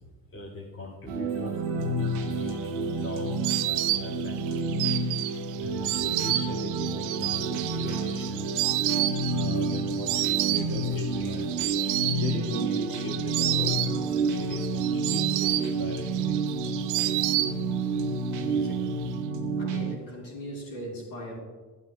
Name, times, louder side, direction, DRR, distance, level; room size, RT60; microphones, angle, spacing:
voice 1, 0.3-3.4 3.7-4.7 5.6-8.6 9.3-11.5 12.2-16.4, left 2 dB, 25° left, -5 dB, 1.9 m, -40 dB
sound 1, 1.1-20.0, right 3 dB, 65° right, 1.2 m, -29 dB
Insect, 2.3-18.0 18.3-19.1, right 15 dB, 45° right, 0.4 m, -31 dB
voice 2, 18.4-18.9 19.6-21.4, equal, 60° left, -3 dB, 3.8 m, -40 dB
15.5 x 12.0 x 2.2 m, 1.3 s
figure-of-eight pair, 50°, 48 cm